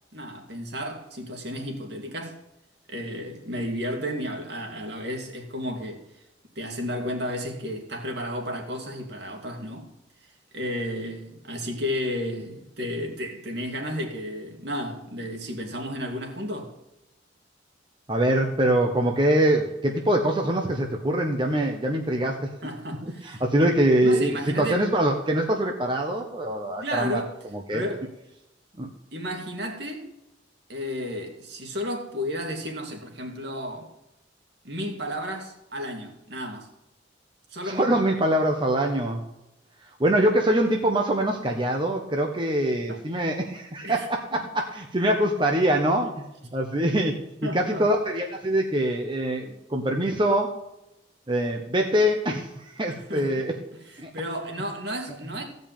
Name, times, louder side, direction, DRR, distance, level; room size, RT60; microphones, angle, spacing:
voice 1, 0.1-2.4 2.9-6.0 6.6-9.9 10.5-16.7 22.6-24.8 26.8-27.3 27.7-28.1 29.1-30.0 30.7-33.9 34.6-36.7 37.5-38.0 42.9-43.0 43.8-44.0 46.0-46.1 47.4-47.9 52.9-53.3 54.1-55.4, equal, 60° right, 2.5 m, -32 dB
voice 2, 18.1-22.5 23.0-27.2 27.5-27.8 28.8-28.9 37.6-39.2 40.0-50.6 51.3-53.6 54.0-54.1, right 1 dB, 25° right, 1.1 m, -24 dB
15.5 x 5.4 x 9.0 m
head